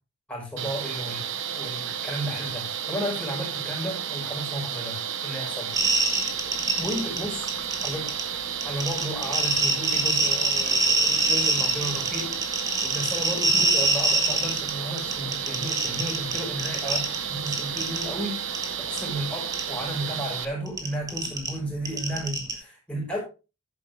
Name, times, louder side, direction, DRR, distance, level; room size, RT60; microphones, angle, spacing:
voice 1, 0.3-1.2 1.6-5.7 6.8-7.5 7.8-8.2 8.6-12.3 12.8-18.5 18.8-19.4 19.7-23.2, equal, 5° left, -2 dB, 5.5 m, -33 dB
sound 1, 0.6-20.5, right 8 dB, 65° right, 1.2 m, -32 dB
sound 2, 5.7-7.2 7.5-8.2 8.6-14.7 15.0-17.2 17.5-18.0 18.5-18.7 19.0-19.1 19.5-19.6 20.7-22.5, right 3 dB, 15° right, 1.9 m, -23 dB
11.0 x 9.6 x 3.5 m, 0.31 s
head